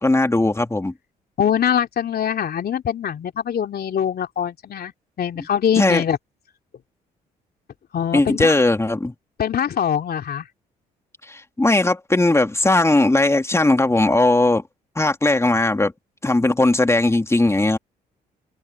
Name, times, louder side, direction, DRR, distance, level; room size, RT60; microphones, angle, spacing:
voice 1, 0.0-0.9 5.8-6.0 8.1-9.1 11.3-14.6 15.0-15.9 16.2-17.8, left 2 dB, 15° left, 2.5 m, -18 dB
voice 2, 1.4-4.9 5.2-6.2 7.9-8.5 9.4-10.4, left 9 dB, 55° left, 2.9 m, -23 dB
open air
hypercardioid pair, 55°, 19 cm